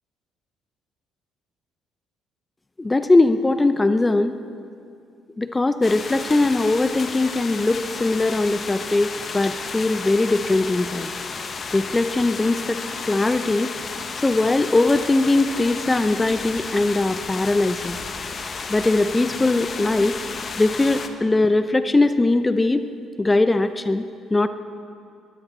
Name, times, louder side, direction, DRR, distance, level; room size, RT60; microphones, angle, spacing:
voice 1, 2.8-4.4 5.4-11.1 11.7-13.7 14.2-18.0 18.7-20.2 20.6-22.9 23.2-24.5, left 2 dB, 20° left, 11 dB, 0.7 m, -20 dB
sound 1, 5.8-21.1, left 5 dB, 40° left, 1.1 m, -33 dB
21.5 x 14.5 x 4.1 m, 2.5 s
hypercardioid pair, 45°, 0 cm